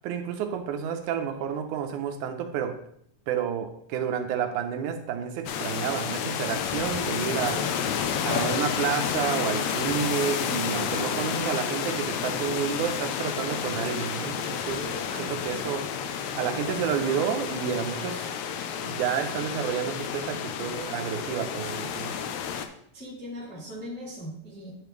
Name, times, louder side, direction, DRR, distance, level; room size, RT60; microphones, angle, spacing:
voice 1, 0.0-2.8 3.3-7.7 8.2-14.8 15.2-15.9 16.3-18.3 18.8-22.2, right 8 dB, 90° right, 5 dB, 2.2 m, -30 dB
sound 1, 5.5-22.7, left 8 dB, 75° left, 1.6 m, -30 dB
voice 2, 14.8-15.2 22.9-24.7, equal, 5° left, -8 dB, 1.8 m, -39 dB
9.5 x 5.0 x 3.1 m, 0.68 s
omnidirectional pair, 3.4 m